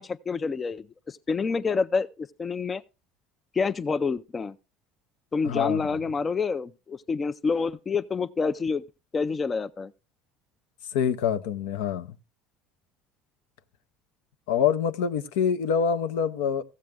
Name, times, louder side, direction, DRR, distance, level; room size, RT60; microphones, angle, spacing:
voice 1, 0.0-2.8 3.5-4.6 5.3-8.8 9.1-9.9, left 4 dB, 30° left, 0.4 m, -28 dB
voice 2, 5.4-5.8 10.9-12.1 14.5-16.6, left 7 dB, 75° left, 0.6 m, -25 dB
14.5 x 7.5 x 3.4 m
hypercardioid pair, 70°, 0 cm